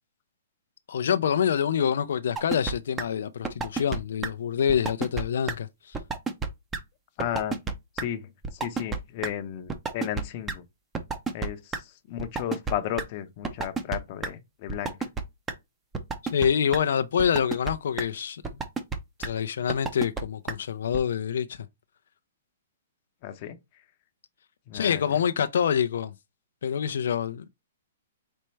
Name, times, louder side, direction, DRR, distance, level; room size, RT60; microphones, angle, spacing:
voice 1, 0.9-5.9 16.2-18.4 19.2-21.7 24.7-26.1 26.6-27.5, left 8 dB, 70° left, 0.4 m, -26 dB
sound 1, 2.4-2.7 3.0-3.1 3.4-4.0 4.2-4.3 4.7-5.2 5.5-5.6 5.9-6.5 6.7-6.8 7.2-7.7 8.0-8.1 8.4-9.0 9.2-9.3 9.7-10.5 10.9-11.8 12.2-13.0 13.4-14.0 14.2-14.3 14.7-15.2 15.5-15.6 15.9-16.5 16.7-16.8 17.2-17.7 18.0-18.1 18.4-19.0 19.2-19.3 19.7-20.2 20.5-20.6 20.9-21.0, right 5 dB, 15° right, 0.6 m, -29 dB
voice 2, 7.2-7.6 8.0-10.6 11.3-15.0 23.2-23.6 24.7-25.0, left 11 dB, 35° left, 0.7 m, -34 dB
4.3 x 3.2 x 3.2 m
hypercardioid pair, 155°, 0 cm